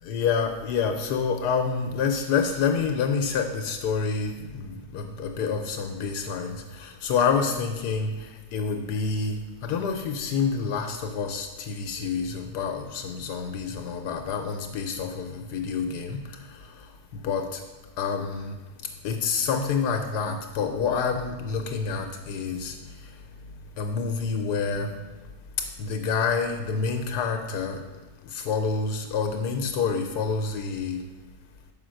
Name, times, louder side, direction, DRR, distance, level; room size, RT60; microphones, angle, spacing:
voice 1, 0.1-17.6 18.0-18.6 19.0-23.2 23.8-24.9 25.8-27.8 28.2-31.0, left 5 dB, 80° left, 5 dB, 1.2 m, -28 dB
5.7 x 5.0 x 6.3 m, 1.3 s
omnidirectional pair, 1.7 m